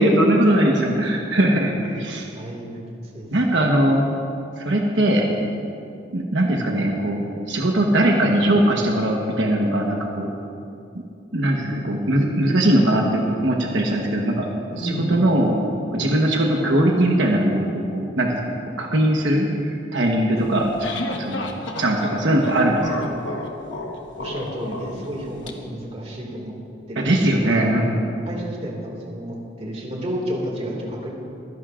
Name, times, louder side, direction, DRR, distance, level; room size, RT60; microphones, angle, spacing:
voice 1, 0.0-2.2 3.3-4.0 4.6-5.3 6.1-7.2 7.5-10.3 11.3-14.5 14.8-15.5 15.9-17.6 17.9-20.7 21.2-23.1 27.0-28.1, right 1 dB, 80° right, 0 dB, 1.1 m, -20 dB
voice 2, 2.3-2.8 3.1-3.3 3.6-3.9 14.7-15.2 20.4-20.5 24.2-26.5 26.9-27.8 28.3-31.1, equal, 35° right, -2 dB, 2.1 m, -31 dB
sound 1, 20.4-25.5, left 2 dB, 85° left, 1.2 m, -32 dB
25.0 x 11.0 x 2.5 m, 2.6 s
head